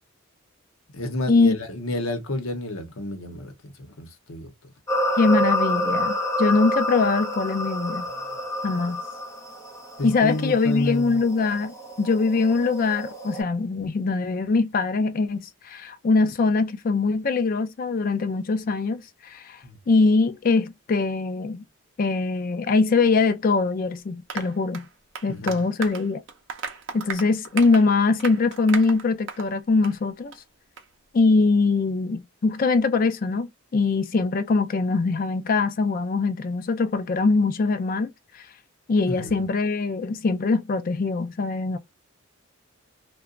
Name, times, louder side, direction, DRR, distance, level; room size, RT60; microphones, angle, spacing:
voice 1, 0.9-4.5 10.0-11.2 19.6-19.8 25.3-25.6 39.1-39.4, left 1 dB, 65° left, 0.8 m, -30 dB
sound 1, 4.9-13.4, equal, 15° left, 0.8 m, -28 dB
voice 2, 5.2-8.1 8.6-9.0 10.0-19.6 19.9-21.6 22.0-24.9 25.2-26.2 26.9-30.3 31.1-38.1 38.9-41.8, left 4 dB, 40° left, 0.3 m, -22 dB
Applause, 24.3-29.5 29.8-30.0 30.3-30.4 30.8-30.9, right 5 dB, 55° right, 0.6 m, -36 dB
2.8 x 2.2 x 2.4 m
head